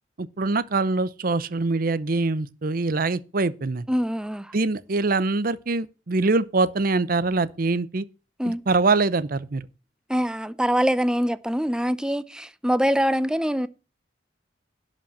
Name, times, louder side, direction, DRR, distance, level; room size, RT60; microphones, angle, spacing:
voice 1, 0.2-3.9 4.5-8.0 8.4-9.6, right 3 dB, 50° right, 0.7 m, -24 dB
voice 2, 3.9-4.5 8.4-8.6 10.1-13.7, equal, 5° right, 0.5 m, -24 dB
11.0 x 5.2 x 7.2 m
head